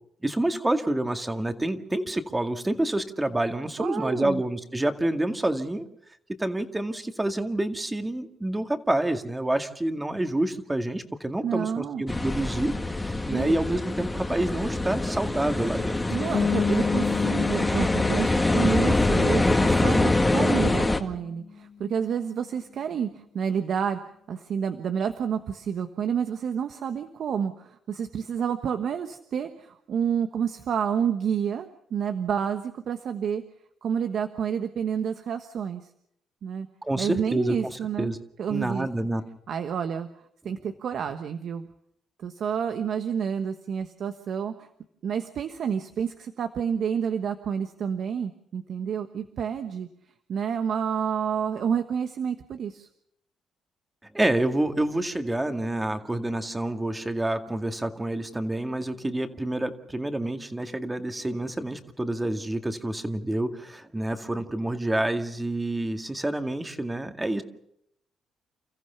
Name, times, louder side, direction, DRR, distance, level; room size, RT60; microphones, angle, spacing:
voice 1, 0.2-5.9 6.4-16.0 16.3-16.5 36.8-38.2 38.5-39.2 54.1-67.4, right 1 dB, 15° right, 7 dB, 2.1 m, -28 dB
voice 2, 3.8-4.4 11.4-12.0 13.3-13.5 16.1-24.0 24.3-33.4 33.8-35.9 36.4-36.7 37.0-38.1 38.4-38.9 39.5-40.1 40.4-41.7 42.2-44.7 45.0-49.9 50.3-52.9, right 7 dB, 65° right, 8 dB, 1.3 m, -29 dB
sound 1, 12.1-21.0, left 2 dB, 15° left, 1.9 m, -24 dB
sound 2, 16.3-21.9, left 6 dB, 55° left, 1.3 m, -32 dB
30.0 x 14.5 x 6.9 m, 0.75 s
cardioid pair, 90°, 0 cm